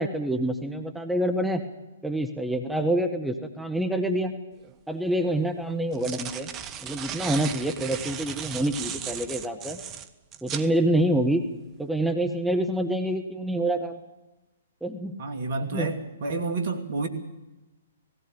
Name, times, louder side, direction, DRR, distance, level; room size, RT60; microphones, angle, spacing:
voice 1, 0.0-1.6 2.0-4.3 4.9-6.5 6.8-9.8 10.4-11.4 11.8-14.0 14.8-15.2 15.6-15.9, right 1 dB, ahead, 5 dB, 1.5 m, -26 dB
sound 1, 4.6-4.7 5.7-10.7, right 9 dB, 25° right, 1.2 m, -36 dB
voice 2, 15.2-17.1, right 3 dB, 50° right, 7 dB, 2.7 m, -29 dB
18.0 x 17.0 x 8.8 m, 1.0 s
figure-of-eight pair, 120°, 0 cm